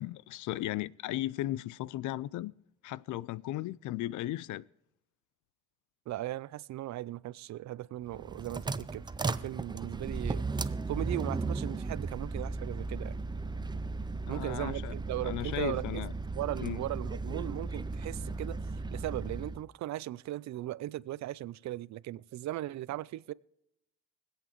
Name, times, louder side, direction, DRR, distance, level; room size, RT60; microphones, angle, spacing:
voice 1, 0.0-2.5 2.8-4.6 14.3-14.9 15.2-16.1 16.6-16.8, left 15 dB, 75° left, 0.5 m, -36 dB
voice 2, 6.1-10.5 10.9-13.2 14.3-16.0 16.4-18.6 18.9-23.3, right 15 dB, 65° right, 0.5 m, -38 dB
sound 1, 8.1-19.6, right 3 dB, 15° right, 0.5 m, -36 dB
24.5 x 8.3 x 3.1 m
cardioid pair, 90°, 30 cm